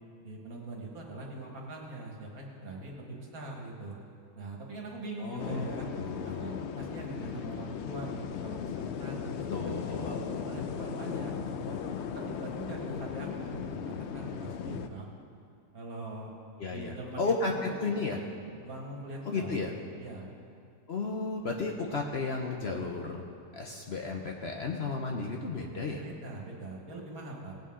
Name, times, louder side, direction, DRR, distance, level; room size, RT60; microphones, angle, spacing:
voice 1, 0.2-4.0 4.4-5.9 6.2-11.8 12.1-15.1 15.7-16.3 16.7-17.3 17.7-17.8 18.6-19.6 20.0-20.3 26.0-27.7, right 2 dB, 65° right, -1 dB, 2.1 m, -42 dB
voice 2, 5.2-5.7 6.0-6.6 9.5-10.2 16.6-18.2 19.3-19.7 20.9-23.2 23.5-26.0, left 3 dB, 50° left, 1 dB, 0.9 m, -33 dB
sound 1, 5.4-14.9, left 7 dB, 70° left, 0.6 m, -37 dB
18.5 x 8.3 x 3.7 m, 2.5 s
omnidirectional pair, 1.7 m